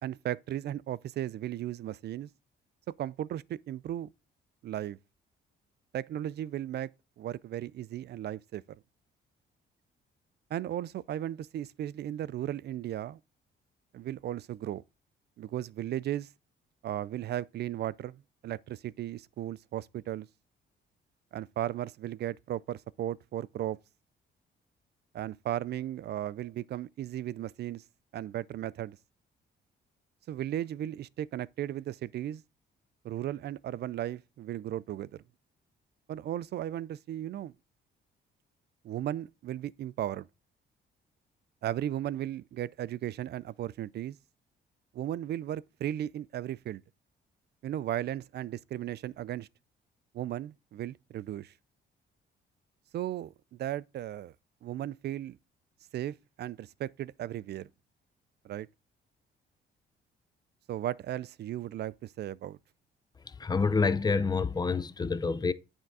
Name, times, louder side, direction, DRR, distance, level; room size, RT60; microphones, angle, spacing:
voice 1, 0.0-2.3 3.0-4.1 4.6-5.0 5.9-6.9 7.2-8.6 10.5-13.2 13.9-14.8 15.4-16.3 16.8-20.3 21.3-23.8 25.1-27.8 28.1-29.0 30.3-32.4 33.0-35.2 36.1-37.5 38.8-40.3 41.6-44.2 44.9-46.8 47.6-49.5 50.1-51.5 52.9-54.3 54.6-55.4 55.9-57.7 58.4-58.7 60.7-62.6, right 12 dB, 55° right, 0.4 m, -36 dB
voice 2, 63.4-65.5, left 4 dB, 20° left, 0.5 m, -27 dB
9.0 x 3.6 x 4.6 m
cardioid pair, 90°, 20 cm